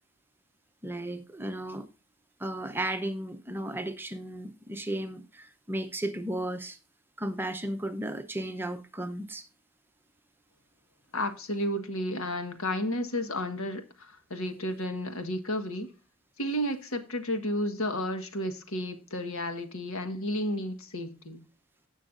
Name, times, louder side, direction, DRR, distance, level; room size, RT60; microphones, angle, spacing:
voice 1, 0.8-1.9 2.4-6.8 7.2-9.4, right 1 dB, 10° right, 0.7 m, -34 dB
voice 2, 11.1-15.9 16.4-21.4, left 1 dB, 80° left, 1.5 m, -32 dB
17.0 x 6.4 x 2.6 m
head